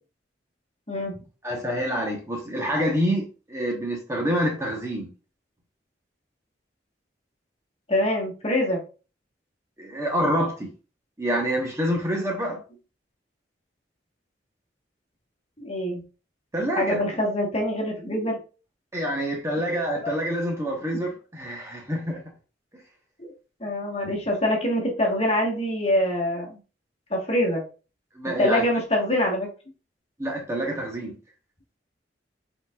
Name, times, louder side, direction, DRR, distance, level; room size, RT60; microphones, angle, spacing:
voice 1, 0.9-1.2 7.9-8.8 15.6-16.0 16.8-18.4 23.2-23.3 23.6-26.6 27.1-27.6 28.4-29.5, left 1 dB, 35° left, 1.3 m, -24 dB
voice 2, 1.4-5.1 9.8-10.7 11.2-12.6 16.5-17.0 18.9-22.2 28.2-28.6 30.2-31.2, equal, 15° right, 1.0 m, -27 dB
4.9 x 4.0 x 2.4 m
head